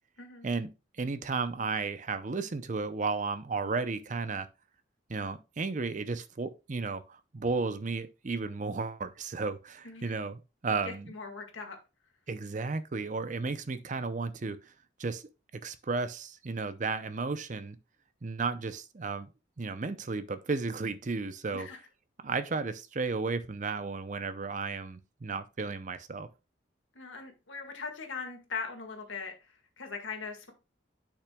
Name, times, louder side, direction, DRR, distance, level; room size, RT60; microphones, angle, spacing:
voice 1, 0.2-0.5 9.8-10.2 10.8-11.8 21.5-21.8 26.9-30.5, left 5 dB, 80° left, 1.8 m, -40 dB
voice 2, 1.0-4.5 5.1-11.1 12.3-14.7 15.0-15.2 15.6-17.8 18.2-19.3 19.6-21.7 22.2-26.3, right 4 dB, 40° right, 0.6 m, -33 dB
10.0 x 5.9 x 2.3 m
head